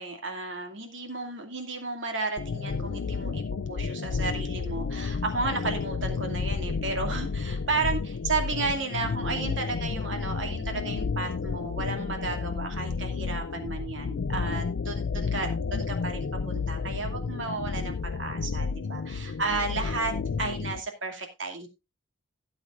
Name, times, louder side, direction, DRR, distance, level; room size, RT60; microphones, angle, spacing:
voice 1, 0.0-8.0 8.2-21.7, right 3 dB, 70° right, 4 dB, 2.5 m, -33 dB
sound 1, 2.4-20.8, left 5 dB, 70° left, 0.5 m, -31 dB
17.0 x 8.0 x 2.5 m, 0.24 s
head